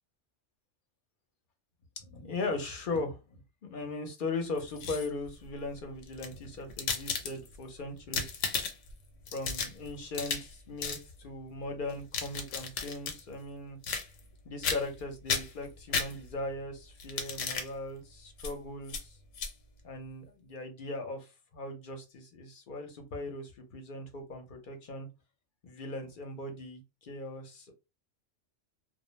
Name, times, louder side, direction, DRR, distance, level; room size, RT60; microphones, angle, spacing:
voice 1, 2.0-3.4 3.7-8.4 9.3-13.8 14.4-19.2 19.8-25.1 25.6-27.7, left 2 dB, 50° left, 0.7 m, -39 dB
sound 1, 4.6-5.3 6.0-7.6 8.0-8.9 9.3-10.5 10.8-11.0 11.9-13.2 13.8-14.3 14.6-15.0 15.3-16.5 17.0-17.7 18.4-18.5 18.9-19.0 19.3-19.5, left 5 dB, 85° left, 1.0 m, -34 dB
2.2 x 2.0 x 3.0 m
omnidirectional pair, 1.3 m